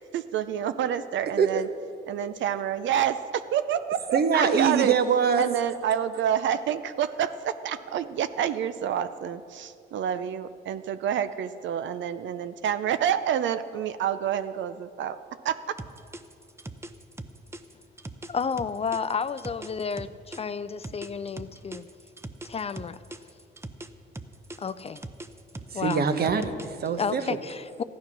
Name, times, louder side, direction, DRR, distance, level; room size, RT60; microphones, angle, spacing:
voice 1, 0.0-1.7 2.1-4.9 5.4-15.8, right 9 dB, 70° right, 11 dB, 0.6 m, -28 dB
voice 2, 4.1-5.4 25.7-27.2, right 6 dB, 50° right, 9 dB, 1.1 m, -23 dB
sound 1, 15.8-20.4 20.8-23.9 24.1-26.9, right 2 dB, 15° right, 0.7 m, -40 dB
voice 3, 18.3-21.9 22.4-23.0 24.6-25.0 25.7-26.0 27.0-27.8, left 5 dB, 30° left, 14 dB, 0.4 m, -31 dB
14.5 x 9.5 x 6.0 m, 2.4 s
cardioid pair, 90°, 20 cm